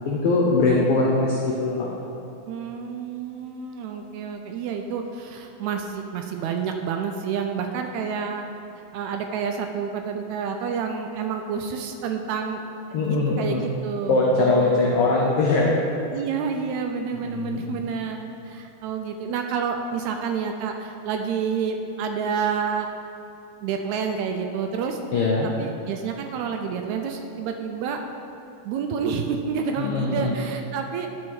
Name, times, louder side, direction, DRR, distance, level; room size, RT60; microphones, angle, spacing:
voice 1, 0.0-2.0 12.9-13.6 14.1-15.8 17.2-17.7 25.1-25.5 29.8-30.3, left 3 dB, 80° left, -2 dB, 1.2 m, -21 dB
voice 2, 2.5-8.5 8.9-12.6 13.1-15.0 16.1-22.9 23.6-25.0 25.6-28.0 28.6-31.1, right 6 dB, 80° right, 4 dB, 1.8 m, -29 dB
11.5 x 4.3 x 4.7 m, 2.7 s
omnidirectional pair, 3.5 m